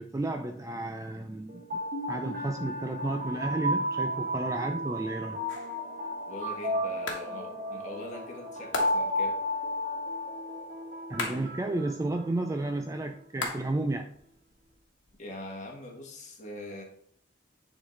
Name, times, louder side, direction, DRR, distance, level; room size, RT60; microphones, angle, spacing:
voice 1, 0.0-1.7 2.1-5.4 11.1-14.1, right 2 dB, 15° right, 5 dB, 0.3 m, -32 dB
sound 1, 1.5-12.6, equal, 50° right, 1.1 m, -33 dB
sound 2, 5.5-5.9 7.1-7.4 8.7-9.2 11.2-11.6 13.4-13.9 14.1-15.1, left 3 dB, 75° left, 1.3 m, -37 dB
voice 2, 6.3-9.4 15.2-16.8, left 1 dB, 40° left, 0 dB, 1.5 m, -42 dB
9.6 x 3.9 x 3.2 m, 0.67 s
head